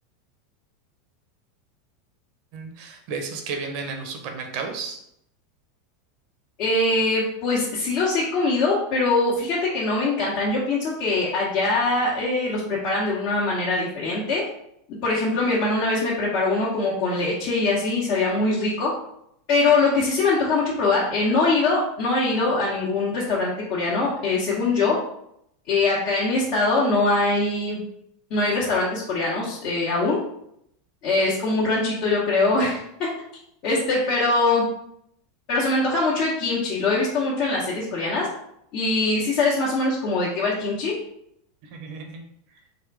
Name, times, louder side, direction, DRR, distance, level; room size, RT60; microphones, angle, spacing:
voice 1, 2.5-5.0 41.7-42.2, right 5 dB, 55° right, 4 dB, 0.9 m, -33 dB
voice 2, 6.6-14.4 15.0-18.9 19.5-25.0 25.7-27.8 28.3-30.2 31.0-33.1 33.6-34.6 35.5-38.3 38.7-40.9, left 3 dB, 50° left, -7 dB, 1.4 m, -22 dB
4.0 x 2.5 x 4.8 m, 0.75 s
supercardioid pair, 125°, 0 cm